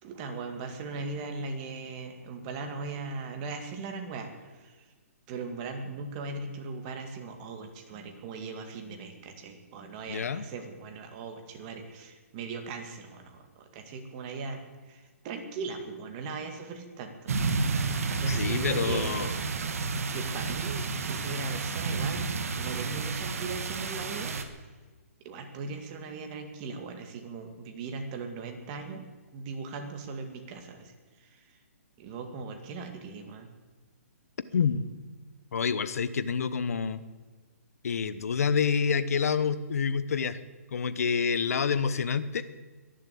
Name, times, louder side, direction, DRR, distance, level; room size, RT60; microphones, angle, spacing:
voice 1, 0.0-4.9 5.3-24.4 25.2-29.1 29.3-31.4 32.0-33.5, right 4 dB, 30° right, 5 dB, 2.3 m, -39 dB
voice 2, 10.1-10.4 18.3-19.3 34.5-34.9 35.5-37.0 37.8-40.4 40.7-42.4, left 6 dB, 70° left, 14 dB, 1.0 m, -28 dB
sound 1, 17.3-24.4, right 4 dB, 65° right, 1.8 m, -31 dB
22.5 x 7.6 x 8.5 m, 1.3 s
hypercardioid pair, 155°, 8 cm